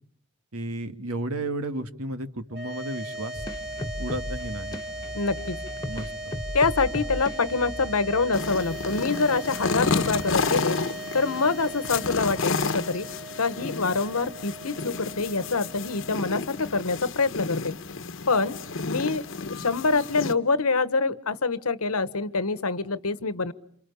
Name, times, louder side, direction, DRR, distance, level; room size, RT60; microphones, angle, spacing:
voice 1, 0.5-3.5 4.0-4.8 5.8-6.1, right 1 dB, 85° right, 9 dB, 2.0 m, -33 dB
sound 1, 2.5-16.9, right 1 dB, 45° right, 1.9 m, -39 dB
sound 2, 3.3-9.0, left 1 dB, 20° left, 1.4 m, -36 dB
voice 2, 5.1-5.6 6.5-10.8 11.1-13.1 13.4-17.8 18.3-18.6 18.8-23.5, left 4 dB, 85° left, 14 dB, 1.3 m, -25 dB
sound 3, 8.3-20.3, left 4 dB, 60° left, 1.1 m, -31 dB
28.5 x 28.0 x 7.1 m, 0.66 s
head